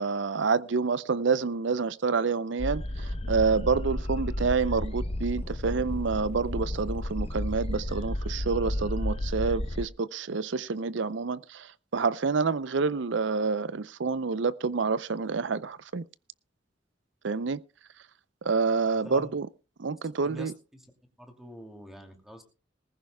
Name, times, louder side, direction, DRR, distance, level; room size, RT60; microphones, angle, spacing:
voice 1, 0.0-16.0 17.2-17.6 18.4-19.5 19.8-20.5, right 4 dB, 75° right, 0.6 m, -28 dB
sound 1, 2.6-9.9, left 1 dB, 30° left, 0.8 m, -32 dB
voice 2, 18.8-19.3 20.2-20.9 21.2-22.4, equal, ahead, 2.5 m, -45 dB
20.0 x 14.5 x 2.3 m
head